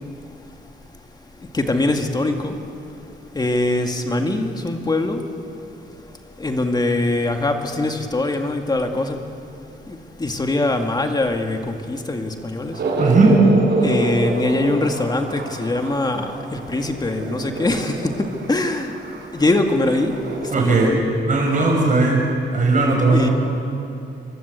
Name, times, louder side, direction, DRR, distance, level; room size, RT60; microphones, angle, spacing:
voice 1, 1.5-2.6 3.3-5.4 6.4-9.2 9.9-12.8 13.8-19.0 19.3-21.0 23.1-23.3, left 2 dB, 20° left, 4 dB, 2.1 m, -22 dB
sound 1, 12.7-20.8, right 2 dB, 60° right, 5.4 m, -27 dB
voice 2, 13.0-13.4 20.5-20.9 21.3-22.2 22.5-23.3, right 3 dB, 40° right, 1 dB, 6.3 m, -17 dB
28.5 x 24.0 x 8.2 m, 2.7 s
wide cardioid pair, 165°, 20 cm